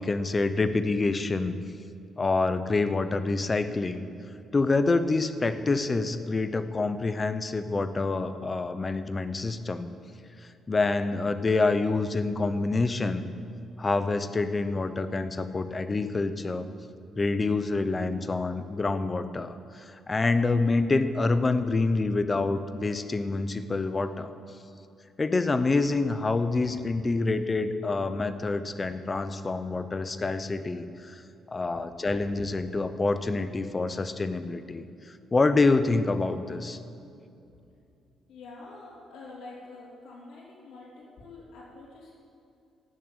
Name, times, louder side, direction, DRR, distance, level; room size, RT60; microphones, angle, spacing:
voice 1, 0.0-1.6 2.2-4.0 4.5-9.9 10.7-13.3 13.8-16.7 17.2-24.3 25.2-31.2 31.5-34.9 35.3-36.8, left 3 dB, 20° left, 11 dB, 0.6 m, -27 dB
voice 2, 38.3-42.1, left 3 dB, 90° left, -9 dB, 3.3 m, -46 dB
17.0 x 6.6 x 8.8 m, 2.6 s
cardioid pair, 165°, 0 cm